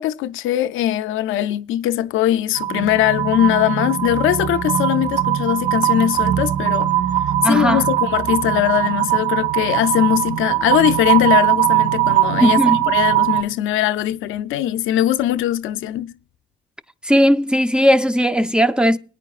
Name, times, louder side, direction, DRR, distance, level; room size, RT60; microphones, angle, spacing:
voice 1, 0.0-6.9 7.4-12.6 12.9-16.1, left 12 dB, 85° left, 0.5 m, -20 dB
sound 1, 2.5-13.4, right 13 dB, 40° right, 1.1 m, -20 dB
voice 2, 7.4-7.8 12.4-12.8 17.0-19.0, equal, 5° right, 0.5 m, -16 dB
21.0 x 9.1 x 2.4 m
cardioid pair, 90°, 20 cm